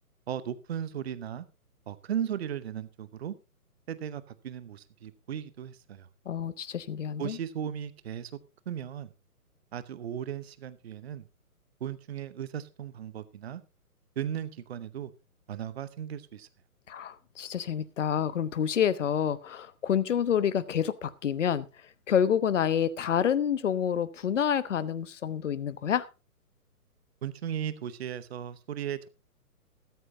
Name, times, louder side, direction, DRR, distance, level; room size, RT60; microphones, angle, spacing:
voice 1, 0.3-1.5 1.9-3.3 3.9-6.1 7.2-8.3 8.7-9.1 9.7-11.3 11.8-13.6 14.2-15.1 15.5-16.5 27.2-29.1, right 9 dB, 45° right, 0.9 m, -36 dB
voice 2, 6.2-7.4 16.9-21.7 22.1-26.0, left 8 dB, 50° left, 1.1 m, -28 dB
14.5 x 14.0 x 2.8 m
figure-of-eight pair, 135°, 46 cm